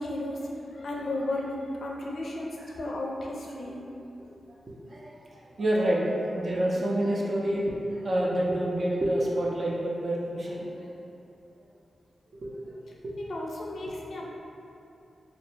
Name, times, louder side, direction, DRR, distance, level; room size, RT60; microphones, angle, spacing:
voice 1, 0.0-3.9 13.2-14.3, left 1 dB, 60° left, -2 dB, 0.4 m, -34 dB
voice 2, 4.7-10.9 12.4-12.8 13.0-13.1, right 1 dB, 45° right, -4 dB, 0.4 m, -28 dB
2.4 x 2.0 x 3.1 m, 2.8 s
wide cardioid pair, 110°, 0 cm